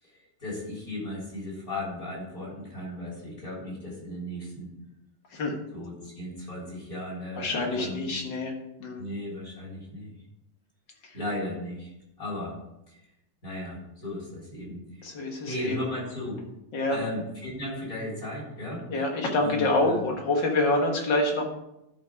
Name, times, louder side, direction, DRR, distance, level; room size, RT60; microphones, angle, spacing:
voice 1, 0.0-4.7 5.7-8.1 9.0-10.1 11.1-12.6 12.9-13.1 13.4-15.0 15.5-16.4 16.9-18.9 19.4-20.0, left 1 dB, 40° left, -4 dB, 4.2 m, -36 dB
voice 2, 5.3-5.6 7.3-8.5 8.8-9.1 11.0-11.2 15.0-15.8 16.7-17.0 18.9-21.5, left 2 dB, 55° left, 2 dB, 2.2 m, -26 dB
11.5 x 5.5 x 4.7 m, 0.85 s
omnidirectional pair, 2.4 m